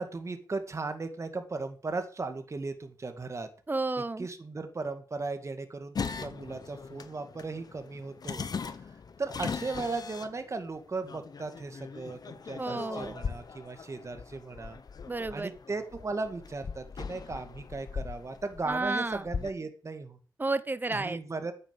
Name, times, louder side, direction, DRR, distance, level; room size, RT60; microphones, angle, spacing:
voice 1, 0.0-3.5 4.2-8.5 9.2-14.8 15.3-20.2 20.9-21.5, right 3 dB, 40° right, 7 dB, 1.9 m, -36 dB
voice 2, 3.7-4.3 12.6-13.2 15.1-15.5 18.7-19.2 20.4-21.2, right 3 dB, 25° right, 15 dB, 0.9 m, -31 dB
sound 1, 5.9-19.5, left 5 dB, 60° left, 1.0 m, -40 dB
9.5 x 8.9 x 7.0 m, 0.39 s
cardioid pair, 70°, 8 cm